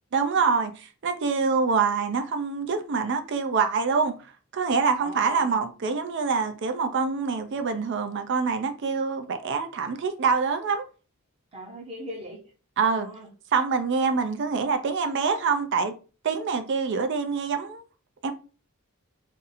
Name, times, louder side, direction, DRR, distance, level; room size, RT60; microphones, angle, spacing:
voice 1, 0.1-4.1 4.5-10.8 12.8-13.1 13.5-15.9 16.2-17.8 18.2-18.3, right 5 dB, 55° right, 0.4 m, -25 dB
voice 2, 4.9-5.6 11.5-12.5 12.9-13.3, equal, 30° right, 0.8 m, -40 dB
2.6 x 2.6 x 4.0 m
head